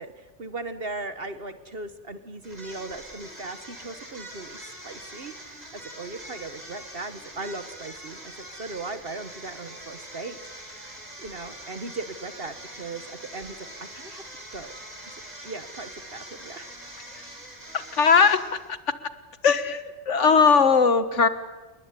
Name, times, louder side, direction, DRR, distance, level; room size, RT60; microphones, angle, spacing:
voice 1, 0.0-5.6 6.0-10.4 10.9-13.6 13.9-14.2 14.5-14.7 15.4-16.9, right 3 dB, 55° right, 11 dB, 1.6 m, -38 dB
sound 1, 2.4-18.8, right 1 dB, 35° right, 5.7 m, -43 dB
voice 2, 17.7-18.4 18.7-18.8 19.4-21.3, left 5 dB, 85° left, 12 dB, 1.8 m, -19 dB
29.0 x 21.0 x 9.8 m, 1.2 s
omnidirectional pair, 1.2 m